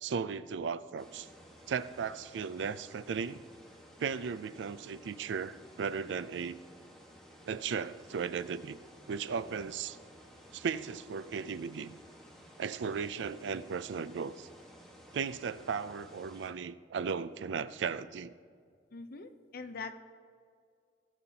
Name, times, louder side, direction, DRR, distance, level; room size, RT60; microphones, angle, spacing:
voice 1, 0.0-1.3 1.7-3.4 4.0-6.6 7.4-8.8 9.1-10.0 10.5-12.0 12.6-14.5 15.1-18.3, right 6 dB, 80° right, 15 dB, 0.4 m, -36 dB
sound 1, 1.0-16.5, equal, 5° left, 1.4 m, -55 dB
voice 2, 18.9-19.9, left 4 dB, 55° left, 9 dB, 0.7 m, -43 dB
17.5 x 7.1 x 2.8 m, 2.2 s
head